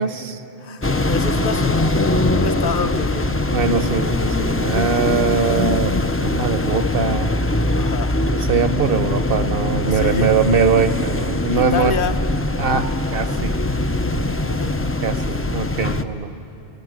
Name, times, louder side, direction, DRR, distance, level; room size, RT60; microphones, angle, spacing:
voice 1, 0.0-0.4 3.5-6.0 6.2-7.3 8.5-12.0 12.6-13.6 15.0-16.3, right 5 dB, 60° right, 10 dB, 1.0 m, -21 dB
voice 2, 0.6-2.0 2.3-3.3 7.8-8.2 9.9-10.3 11.5-12.2 14.4-14.8, left 6 dB, 55° left, 9 dB, 1.0 m, -27 dB
sound 1, 0.8-16.0, left 2 dB, 20° left, 0.3 m, -21 dB
21.0 x 15.5 x 9.4 m, 3.0 s
omnidirectional pair, 1.2 m